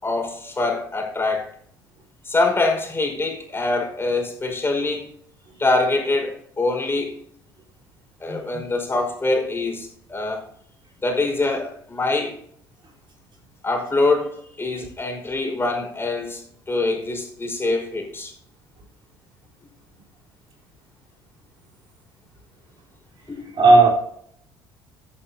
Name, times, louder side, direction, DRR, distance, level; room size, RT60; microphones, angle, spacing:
voice 1, 0.0-1.4 2.2-5.0 5.6-7.2 8.2-10.4 11.0-12.3 13.6-16.4 16.7-18.3 23.3-23.5, left 2 dB, 20° left, 2 dB, 4.9 m, -24 dB
voice 2, 8.3-8.6 23.5-23.9, right 3 dB, 40° right, -1 dB, 3.8 m, -15 dB
15.0 x 8.8 x 2.7 m, 0.65 s
hypercardioid pair, 60°, 12 cm